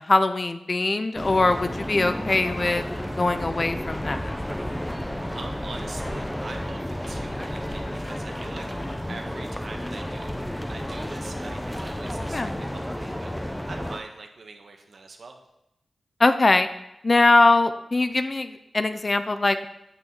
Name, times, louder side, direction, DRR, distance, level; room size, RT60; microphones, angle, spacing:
voice 1, 0.1-2.8 3.2-4.3 12.3-12.5 16.2-16.7 17.0-19.7, left 2 dB, 40° left, 10 dB, 0.8 m, -22 dB
sound 1, 1.2-14.0, equal, 10° left, 1.0 m, -32 dB
voice 2, 5.3-8.7 9.1-10.3 10.7-15.4, right 3 dB, 65° right, 4 dB, 1.6 m, -43 dB
9.3 x 6.2 x 7.6 m, 0.85 s
cardioid pair, 70°, 0 cm